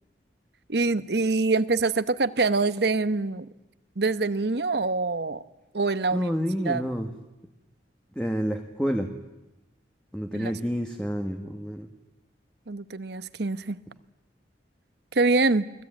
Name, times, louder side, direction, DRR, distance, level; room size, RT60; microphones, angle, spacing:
voice 1, 0.7-3.5 4.0-5.4 5.7-6.3 6.6-6.8 10.3-10.5 12.7-13.8 15.1-15.6, right 3 dB, 65° right, 13 dB, 1.1 m, -25 dB
voice 2, 6.1-7.1 8.1-9.1 10.1-11.9, equal, 5° left, 4 dB, 1.5 m, -29 dB
29.5 x 20.5 x 8.9 m, 0.99 s
head